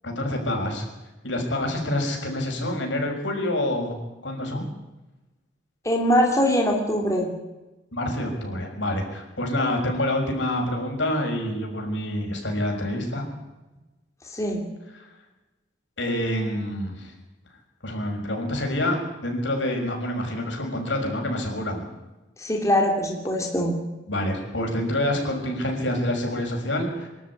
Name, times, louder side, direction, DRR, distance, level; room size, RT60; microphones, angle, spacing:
voice 1, 0.0-0.8 1.2-4.0 4.2-4.6 7.9-13.2 14.9-15.1 16.0-17.1 17.8-19.0 19.2-21.8 24.1-27.1, left 1 dB, 75° left, 2 dB, 6.2 m, -27 dB
voice 2, 5.8-7.3 14.3-14.6 22.4-23.7, equal, 15° left, 1 dB, 3.0 m, -22 dB
25.0 x 12.5 x 9.9 m, 1.1 s
head